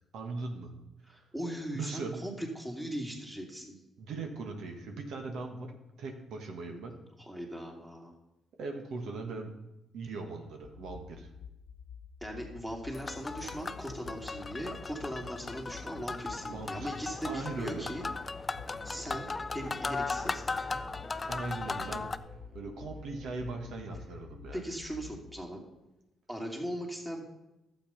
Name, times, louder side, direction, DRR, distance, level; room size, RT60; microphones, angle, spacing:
voice 1, 0.1-0.7 1.0-1.3 1.7-2.3 4.0-6.9 8.6-9.5 9.9-11.3 16.4-16.9 17.2-17.9 21.3-22.1 22.5-24.6, right 3 dB, 75° right, 3 dB, 1.5 m, -39 dB
voice 2, 1.1-3.8 7.2-8.1 12.2-18.1 18.8-20.4 24.5-25.6 26.3-27.2, equal, 10° right, 1 dB, 2.7 m, -39 dB
sound 1, 10.6-25.4, left 7 dB, 85° left, 0.6 m, -50 dB
sound 2, 12.9-22.2, left 3 dB, 30° left, 0.5 m, -37 dB
sound 3, 18.6-23.6, right 4 dB, 40° right, 1.4 m, -53 dB
12.0 x 8.0 x 5.3 m, 0.94 s
cardioid pair, 90°, 0 cm